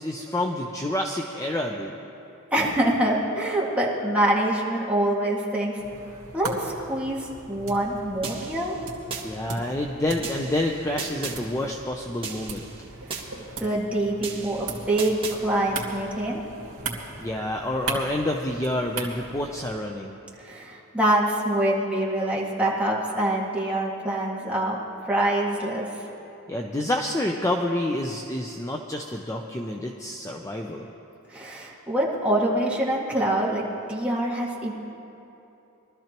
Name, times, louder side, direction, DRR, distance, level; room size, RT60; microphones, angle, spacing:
voice 1, 0.0-2.0 9.2-12.7 17.2-20.2 26.5-30.9, left 1 dB, 15° left, 2 dB, 0.6 m, -28 dB
voice 2, 2.5-5.8 6.3-8.7 13.6-16.4 20.4-24.8 25.1-25.9 31.3-33.6 33.9-34.7, right 1 dB, 5° right, -5 dB, 1.9 m, -25 dB
sound 1, 5.8-19.7, right 3 dB, 70° right, 2.1 m, -38 dB
sound 2, 8.2-9.3 10.2-11.4 12.2-13.3 14.2-15.4, right 5 dB, 25° right, 1.6 m, -36 dB
22.5 x 13.0 x 3.0 m, 2.9 s
head